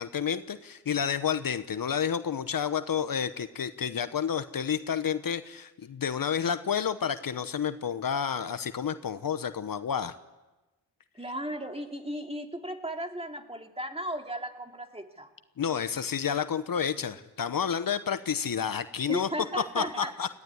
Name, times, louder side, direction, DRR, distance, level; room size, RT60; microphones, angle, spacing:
voice 1, 0.0-10.1 15.6-19.3 19.7-20.3, left 7 dB, 60° left, 11 dB, 1.1 m, -30 dB
voice 2, 11.2-15.3 19.1-20.1, right 1 dB, 15° right, 4 dB, 2.6 m, -35 dB
20.0 x 15.0 x 9.8 m, 1.1 s
cardioid pair, 55°, 39 cm